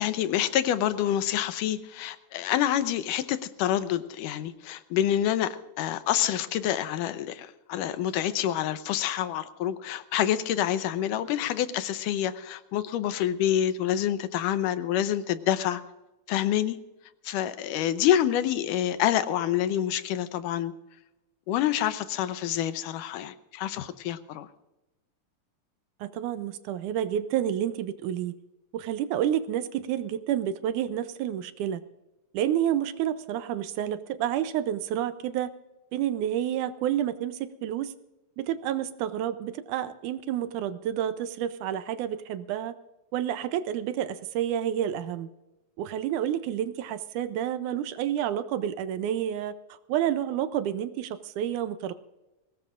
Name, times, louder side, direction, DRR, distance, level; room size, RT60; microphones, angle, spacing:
voice 1, 0.0-15.8 16.3-16.8 17.3-20.7 21.5-24.5, left 11 dB, 85° left, 12 dB, 2.3 m, -27 dB
voice 2, 26.0-28.3 28.7-31.8 32.3-35.5 35.9-37.9 38.4-42.7 43.1-45.3 45.8-49.5 49.9-51.9, right 10 dB, 80° right, 12 dB, 2.1 m, -29 dB
22.5 x 18.5 x 2.5 m, 0.98 s
omnidirectional pair, 3.7 m